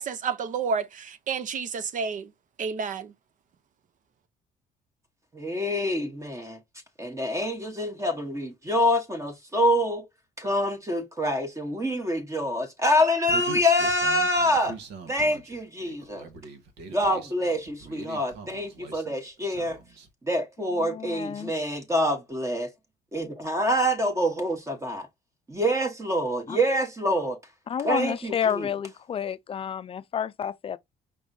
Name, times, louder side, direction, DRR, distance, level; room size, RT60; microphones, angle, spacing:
voice 1, 0.0-2.3 2.6-3.1, right 5 dB, 50° right, 0.7 m, -30 dB
voice 2, 5.3-6.6 7.0-10.1 10.4-14.8 15.1-16.3 16.9-19.8 20.3-22.7 23.1-25.1 25.5-27.4 27.8-28.7, equal, 15° right, 1.1 m, -26 dB
Human voice, 13.3-20.1, right 3 dB, 80° right, 1.4 m, -42 dB
voice 3, 20.8-21.5 26.5-26.6 27.7-30.8, left 8 dB, 35° left, 0.5 m, -30 dB
5.3 x 3.3 x 2.7 m
cardioid pair, 110°, 17 cm